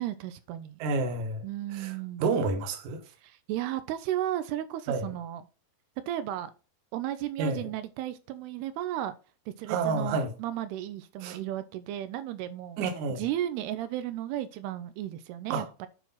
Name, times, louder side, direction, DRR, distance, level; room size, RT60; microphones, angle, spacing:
voice 1, 0.0-0.8 1.4-2.2 3.2-5.5 6.1-6.5 6.9-9.2 9.6-12.8 13.2-15.9, right 12 dB, 85° right, 2.7 m, -34 dB
voice 2, 0.8-1.4 1.7-1.9 2.2-3.0 4.9-5.0 7.4-7.6 9.7-10.3 11.2-11.4 12.8-13.2 15.5-15.6, right 4 dB, 60° right, 2.3 m, -29 dB
9.1 x 4.5 x 5.6 m
omnidirectional pair, 4.7 m